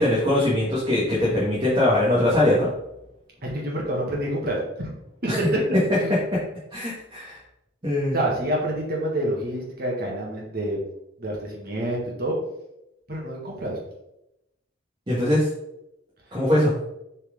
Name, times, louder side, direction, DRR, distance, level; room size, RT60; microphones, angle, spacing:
voice 1, 0.0-2.7 5.3-5.4 6.7-7.4 7.8-8.1 15.1-15.5 16.3-16.7, left 1 dB, 25° right, -7 dB, 1.5 m, -21 dB
voice 2, 3.4-4.9 5.2-5.6 6.0-6.1 8.1-10.8 11.2-12.4 13.1-13.8, right 1 dB, 50° right, -2 dB, 1.9 m, -27 dB
7.1 x 4.5 x 3.7 m, 0.85 s
head